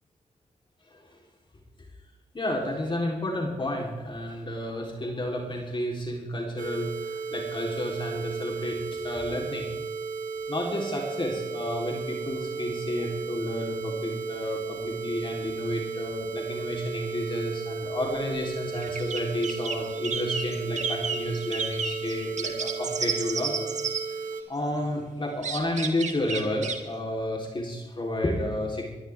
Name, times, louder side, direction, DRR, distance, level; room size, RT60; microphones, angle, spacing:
voice 1, 2.3-9.8 10.5-23.7 24.1-24.2 24.5-28.9, left 1 dB, 35° left, 0 dB, 3.8 m, -31 dB
sound 1, 6.6-24.4, right 5 dB, 80° right, 2.2 m, -35 dB
sound 2, 18.8-24.0 25.4-26.8, right 5 dB, 60° right, 2.5 m, -31 dB
23.0 x 12.0 x 3.6 m, 1.2 s
cardioid pair, 60°, 14 cm